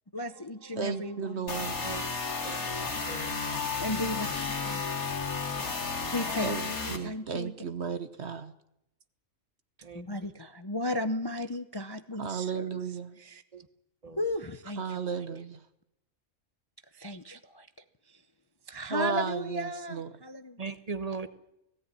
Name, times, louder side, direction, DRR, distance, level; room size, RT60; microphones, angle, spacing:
voice 1, 0.1-1.7 3.8-5.1 5.5-7.6 9.9-13.4 14.2-15.3 16.9-17.7 18.1-18.2 18.7-20.6, left 1 dB, 25° left, 9 dB, 0.6 m, -36 dB
voice 2, 0.8-1.7 2.4-2.6 6.4-6.6 6.9-8.5 12.2-13.1 14.8-15.6 18.9-20.1, right 6 dB, 50° right, 11 dB, 1.2 m, -34 dB
sound 1, 1.5-7.0, left 4 dB, 80° left, 3.1 m, -33 dB
voice 3, 3.1-3.5 9.8-10.3 13.5-13.7 14.0-14.2 20.6-21.3, right 4 dB, 30° right, 11 dB, 1.2 m, -39 dB
18.5 x 17.0 x 9.8 m, 0.83 s
omnidirectional pair, 1.5 m